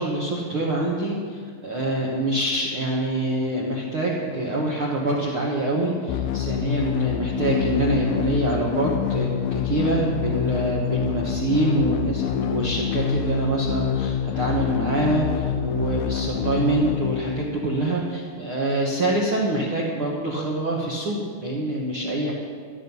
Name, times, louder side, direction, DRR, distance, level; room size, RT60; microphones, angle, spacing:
voice 1, 0.0-22.3, right 2 dB, 75° right, -3 dB, 1.2 m, -25 dB
sound 1, 6.1-18.0, left 10 dB, 85° left, 2.4 m, -26 dB
13.0 x 12.0 x 5.5 m, 2.1 s
omnidirectional pair, 4.6 m